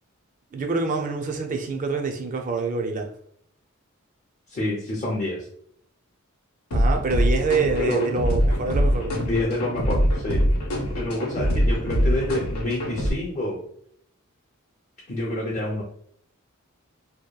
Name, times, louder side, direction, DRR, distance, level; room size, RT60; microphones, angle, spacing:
voice 1, 0.5-3.1 6.7-9.2, right 4 dB, 35° right, 4 dB, 0.4 m, -26 dB
voice 2, 4.5-5.5 7.8-8.0 9.1-10.5 11.0-13.7 15.1-15.8, left 1 dB, 35° left, -3 dB, 0.5 m, -28 dB
sound 1, 6.7-13.1, equal, 85° left, 0.7 m, -23 dB
2.8 x 2.1 x 2.2 m, 0.66 s
head